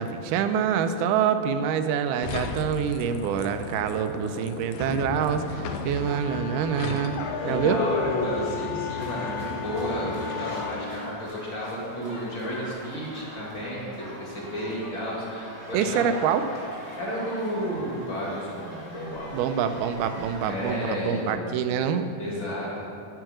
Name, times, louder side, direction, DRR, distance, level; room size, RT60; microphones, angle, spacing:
voice 1, 0.0-7.2 7.4-7.8 15.7-16.4 19.3-22.1, right 8 dB, 80° right, 9 dB, 1.9 m, -26 dB
sound 1, 2.2-11.0, left 4 dB, 85° left, 1.6 m, -34 dB
Wind instrument woodwind instrument, 6.0-10.8, left 5 dB, 65° left, 3.9 m, -37 dB
voice 2, 7.5-16.1 17.0-19.7 20.4-21.6 22.2-22.9, equal, 40° left, -5 dB, 2.2 m, -32 dB
sound 2, 9.0-21.3, equal, 15° right, 0.6 m, -42 dB
10.5 x 4.6 x 7.7 m, 2.5 s
omnidirectional pair, 4.0 m